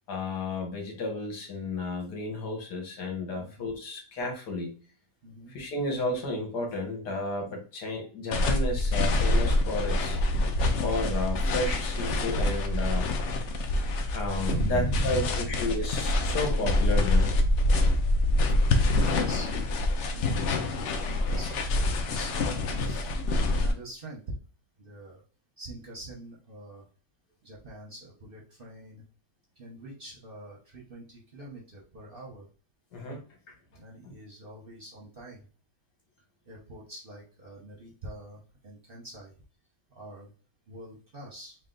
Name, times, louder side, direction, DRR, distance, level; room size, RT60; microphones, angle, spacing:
voice 1, 0.1-4.7 5.5-10.2 10.8-13.1 14.1-17.3 32.9-33.2 34.0-34.1, left 2 dB, 80° left, 2 dB, 1.8 m, -32 dB
voice 2, 3.3-3.7 5.2-5.5 14.5-15.7 19.1-19.5 20.1-23.2 23.5-24.4 24.8-25.2 25.6-26.9 27.4-29.0 29.6-32.5 33.7-35.5 36.5-39.3 39.9-40.3 40.7-41.6, right 1 dB, 45° right, -1 dB, 0.8 m, -40 dB
sound 1, 8.3-23.7, left 2 dB, 65° left, 0.8 m, -26 dB
3.9 x 2.4 x 3.8 m, 0.38 s
omnidirectional pair, 1.7 m